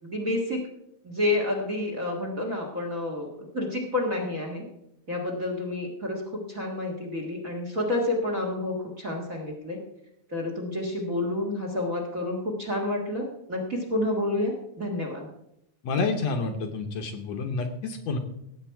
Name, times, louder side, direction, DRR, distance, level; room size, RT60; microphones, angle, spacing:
voice 1, 0.0-0.6 1.0-3.3 3.5-4.6 5.1-9.8 10.3-15.3, left 2 dB, 35° right, 1 dB, 1.7 m, -29 dB
voice 2, 15.8-18.2, left 4 dB, 65° left, 4 dB, 2.1 m, -29 dB
17.0 x 8.1 x 4.7 m, 0.80 s
omnidirectional pair, 3.6 m